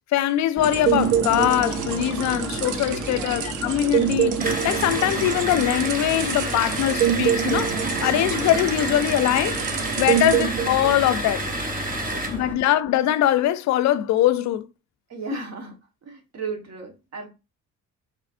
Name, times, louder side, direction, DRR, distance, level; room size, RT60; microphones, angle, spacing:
voice 1, 0.1-9.6 10.0-11.4 12.3-14.7 15.3-15.4, left 12 dB, 65° left, 0.4 m, -22 dB
sound 1, 0.6-12.5, left 1 dB, 5° left, 0.6 m, -35 dB
sound 2, 0.6-11.1, right 9 dB, 80° right, 0.6 m, -26 dB
voice 2, 2.9-3.6 12.1-12.8 15.1-15.7 16.0-17.3, right 4 dB, 60° right, 1.4 m, -36 dB
sound 3, 4.4-12.4, right 1 dB, 30° right, 1.0 m, -30 dB
4.2 x 3.0 x 2.5 m
cardioid pair, 90°, 30 cm